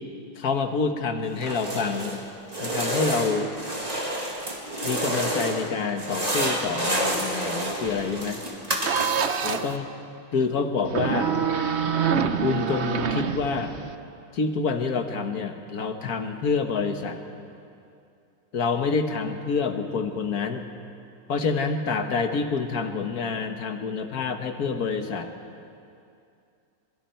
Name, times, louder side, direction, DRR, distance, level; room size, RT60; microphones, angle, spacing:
voice 1, 0.4-2.2 2.6-3.5 4.8-8.4 9.4-9.9 10.3-11.4 12.4-13.7 14.3-17.2 18.5-20.7 21.3-25.3, left 5 dB, 55° left, 6 dB, 1.6 m, -27 dB
sound 1, 1.3-2.2 2.5-5.7 6.0-9.4, right 1 dB, 20° right, 2.3 m, -29 dB
sound 2, 8.8-9.8 10.8-13.9, right 7 dB, 55° right, 0.7 m, -26 dB
26.5 x 23.5 x 4.5 m, 2.5 s
omnidirectional pair, 2.1 m